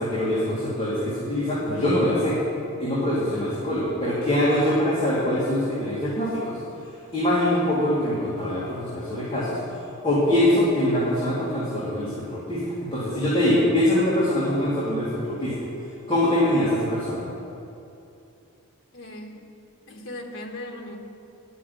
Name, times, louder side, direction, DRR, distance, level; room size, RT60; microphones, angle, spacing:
voice 1, 0.0-2.4 2.8-6.6 7.1-15.6 16.1-17.2, left 1 dB, 25° left, -10 dB, 2.2 m, -23 dB
voice 2, 18.9-19.4 19.9-21.0, left 1 dB, 65° left, 1 dB, 1.4 m, -38 dB
11.0 x 6.2 x 7.7 m, 2.7 s
head